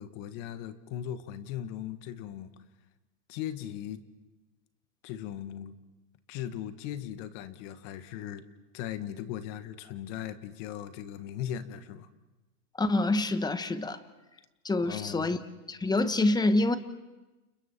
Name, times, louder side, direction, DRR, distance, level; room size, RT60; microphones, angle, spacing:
voice 1, 0.0-2.5 3.3-4.0 5.0-5.8 6.3-8.5 8.7-12.1 14.8-15.4, left 10 dB, 50° left, 10 dB, 1.8 m, -38 dB
voice 2, 12.8-14.0 14.6-15.4 15.7-16.8, left 2 dB, 10° left, 11 dB, 1.2 m, -26 dB
29.5 x 29.5 x 4.5 m, 1.1 s
hypercardioid pair, 120°, 46 cm